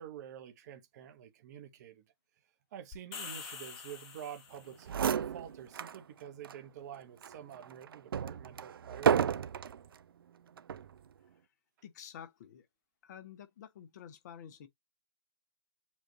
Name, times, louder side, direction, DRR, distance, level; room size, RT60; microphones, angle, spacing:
voice 1, 0.0-2.0 2.7-9.4, right 9 dB, 40° right, 1.0 m, -48 dB
sound 1, 2.9-4.8, left 6 dB, 25° left, 1.2 m, -45 dB
sound 2, 4.6-4.7 4.9-6.0 6.4-6.6 7.2-9.8 10.6-10.9, right 8 dB, 60° right, 0.4 m, -32 dB
voice 2, 11.8-12.7 13.0-14.7, left 9 dB, 45° left, 1.0 m, -50 dB
7.3 x 2.6 x 2.7 m
figure-of-eight pair, 120°, 14 cm